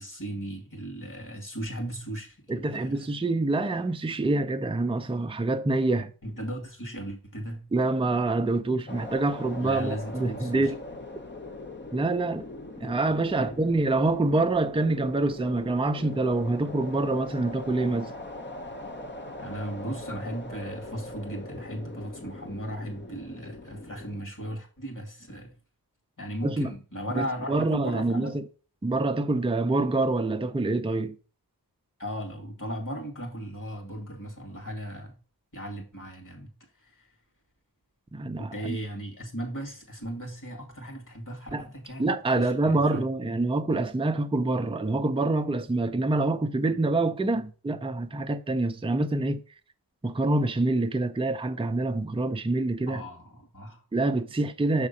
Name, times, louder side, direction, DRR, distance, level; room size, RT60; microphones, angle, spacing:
voice 1, 0.0-3.1 6.2-7.7 9.6-10.7 13.4-13.8 19.4-25.5 26.2-28.3 32.0-35.2 35.5-37.2 38.4-43.0 52.9-53.8, right 1 dB, 50° left, 2.2 m, -37 dB
voice 2, 2.5-6.1 7.7-10.8 11.9-12.5 12.8-18.1 26.4-26.7 27.1-28.4 28.8-31.2 38.1-38.8 41.5-41.6 42.0-49.4 50.0-53.0 53.9-54.9, right 2 dB, 15° right, 0.5 m, -26 dB
sound 1, 8.9-24.2, left 1 dB, 30° left, 0.7 m, -41 dB
6.6 x 3.6 x 5.3 m
wide cardioid pair, 40°, 39 cm